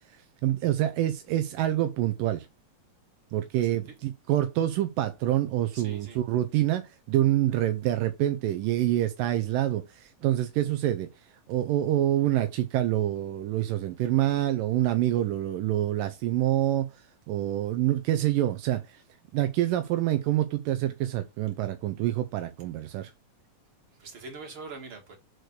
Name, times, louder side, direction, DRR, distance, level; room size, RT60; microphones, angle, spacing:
voice 1, 0.4-2.5 3.3-11.1 11.5-16.9 17.3-19.0 19.3-23.1, right 13 dB, 80° right, 2.4 m, -26 dB
voice 2, 5.7-6.2 24.0-25.2, right 4 dB, 40° right, 3.3 m, -43 dB
6.4 x 4.6 x 6.5 m
omnidirectional pair, 3.9 m